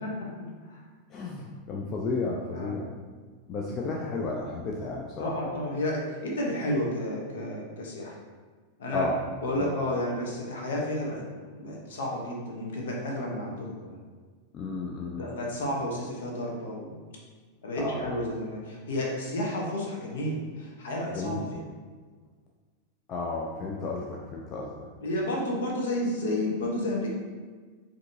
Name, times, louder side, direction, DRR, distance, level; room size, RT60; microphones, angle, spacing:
voice 1, 1.1-2.9 3.5-5.4 8.9-9.2 9.6-9.7 14.5-15.3 17.8-18.1 21.1-21.4 23.1-24.9, left 3 dB, 30° left, -1 dB, 0.4 m, -32 dB
voice 2, 2.5-3.0 5.2-8.2 8.8-9.1 9.4-11.2 11.5-14.0 15.1-16.9 17.6-21.6 25.0-27.1, left 1 dB, 60° left, -1 dB, 0.8 m, -31 dB
5.1 x 2.7 x 2.6 m, 1.5 s
figure-of-eight pair, 90°, 0 cm